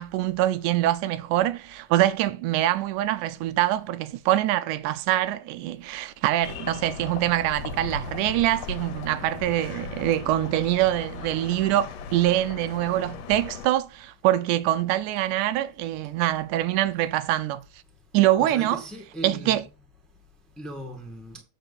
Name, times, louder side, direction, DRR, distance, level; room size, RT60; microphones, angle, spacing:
voice 1, 0.0-17.6 18.1-18.8 19.2-19.6, right 14 dB, 85° right, 2.1 m, -24 dB
sound 1, 6.4-13.7, left 5 dB, 65° left, 2.0 m, -37 dB
voice 2, 18.4-19.6 20.6-21.4, equal, ahead, 1.2 m, -38 dB
8.1 x 4.0 x 6.9 m
omnidirectional pair, 3.6 m